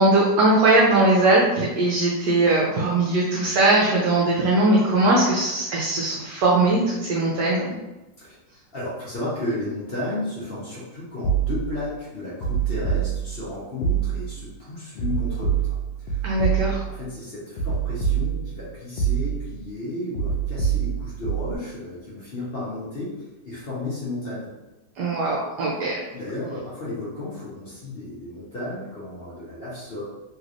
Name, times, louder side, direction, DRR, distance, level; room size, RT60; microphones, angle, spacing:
voice 1, 0.0-7.7 16.2-16.8 25.0-25.9, right 2 dB, 75° right, -4 dB, 1.2 m, -20 dB
voice 2, 8.2-16.4 16.9-24.5 26.1-30.0, left 2 dB, 45° left, -8 dB, 0.8 m, -33 dB
sound 1, 11.2-11.9 12.4-13.5 13.8-14.4 15.0-17.0 17.6-18.6 19.0-19.6 20.1-21.6, right 7 dB, 70° left, 1.1 m, -25 dB
3.2 x 3.0 x 2.5 m, 1.0 s
omnidirectional pair, 1.9 m